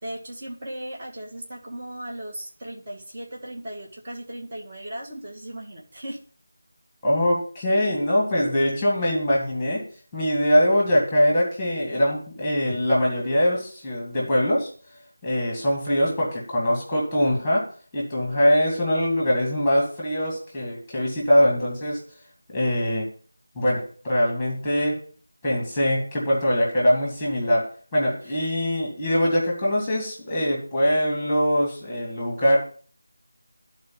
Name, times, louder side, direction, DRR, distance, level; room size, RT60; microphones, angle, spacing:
voice 1, 0.0-6.2 28.2-28.4, right 1 dB, 30° right, -2 dB, 2.0 m, -37 dB
voice 2, 7.0-9.8 10.1-14.7 15.2-17.6 17.9-22.0 22.5-23.1 23.5-25.0 25.4-32.6, equal, ahead, -4 dB, 2.5 m, -22 dB
12.0 x 4.2 x 6.1 m, 0.43 s
figure-of-eight pair, 170°, 0 cm